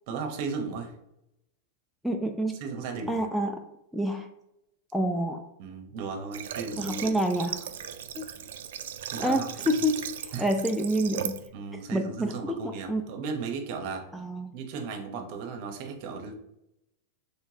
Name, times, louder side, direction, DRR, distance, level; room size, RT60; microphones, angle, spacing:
voice 1, 0.1-0.9 2.6-3.2 5.6-7.2 9.1-9.5 10.3-10.5 11.5-14.1 14.5-16.4, right 5 dB, 55° right, 4 dB, 0.9 m, -35 dB
voice 2, 2.0-2.6 3.1-3.6 3.9-4.3 4.9-5.4 6.8-7.7 8.2-8.3 9.2-9.9 10.2-11.4 11.9-13.1 14.1-14.5, equal, ahead, 4 dB, 0.4 m, -28 dB
Water / Water tap faucet, 6.3-11.5, right 9 dB, 75° right, 0.4 m, -37 dB
4.5 x 3.2 x 2.8 m, 0.85 s
hypercardioid pair, 130°, 0 cm